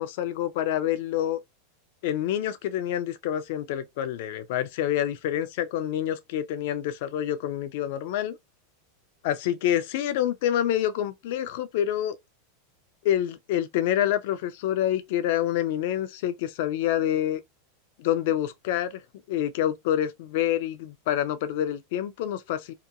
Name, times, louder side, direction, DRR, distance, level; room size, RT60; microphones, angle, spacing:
voice 1, 0.0-1.4 2.0-8.4 9.2-12.2 13.0-17.4 18.0-19.0 19.3-22.7, left 11 dB, 50° left, 0.4 m, -27 dB
2.8 x 2.2 x 2.4 m
supercardioid pair, 175°, 0 cm